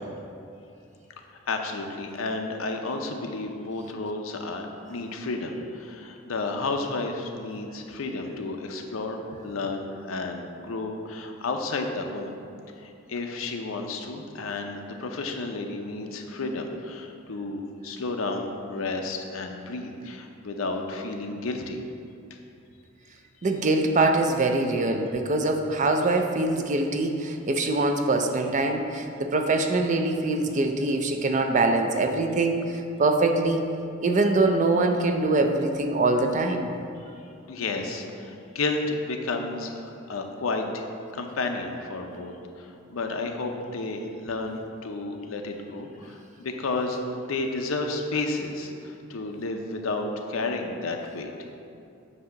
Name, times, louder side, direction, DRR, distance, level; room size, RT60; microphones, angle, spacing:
voice 1, 1.3-12.3 12.8-21.8 37.5-40.8 41.1-51.3, left 3 dB, 80° left, 4 dB, 0.6 m, -32 dB
voice 2, 23.4-33.7 34.0-36.7, right 2 dB, 40° right, 5 dB, 0.4 m, -23 dB
8.0 x 2.8 x 5.6 m, 2.6 s
head